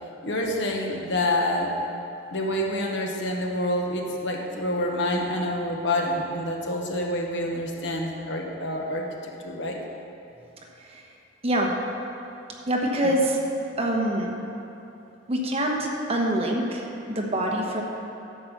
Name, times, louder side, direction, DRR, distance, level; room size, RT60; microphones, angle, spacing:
voice 1, 0.2-1.8 2.3-9.8, left 1 dB, 65° left, 1 dB, 1.3 m, -27 dB
voice 2, 11.4-11.8 12.7-13.4 13.8-14.4 15.3-17.8, right 1 dB, 30° right, 0 dB, 1.2 m, -25 dB
12.0 x 5.5 x 7.3 m, 2.9 s
head